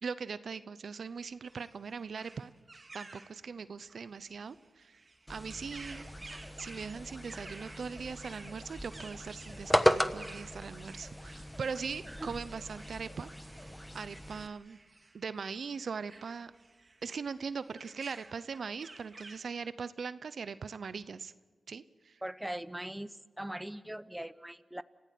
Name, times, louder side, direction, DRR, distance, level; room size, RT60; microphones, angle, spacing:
voice 1, 0.0-2.5 2.9-5.0 5.3-6.1 6.6-13.3 13.9-14.8 15.1-16.5 17.0-21.3 21.7-22.2, right 5 dB, 80° right, 15 dB, 0.7 m, -40 dB
sound 1, 1.0-19.4, right 3 dB, 50° right, 2.1 m, -54 dB
sound 2, 5.3-14.5, equal, 5° left, 1.2 m, -36 dB
sound 3, 5.9-14.0, left 1 dB, 25° left, 5.1 m, -55 dB
voice 2, 22.2-24.8, right 1 dB, 10° right, 15 dB, 0.9 m, -41 dB
28.5 x 15.5 x 7.7 m, 1.4 s
cardioid pair, 45°, 0 cm